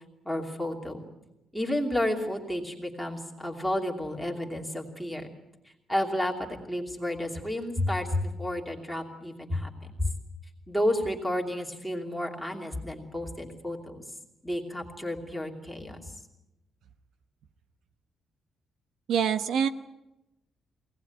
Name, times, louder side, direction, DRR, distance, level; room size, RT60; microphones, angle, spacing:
voice 1, 0.2-1.0 1.5-5.3 5.9-9.7 10.0-10.1 10.7-14.0 14.4-16.1, left 1 dB, ahead, -1 dB, 2.8 m, -31 dB
voice 2, 19.1-19.7, right 7 dB, 70° right, 10 dB, 0.9 m, -25 dB
23.5 x 18.5 x 9.3 m, 0.94 s
cardioid pair, 175°, 0 cm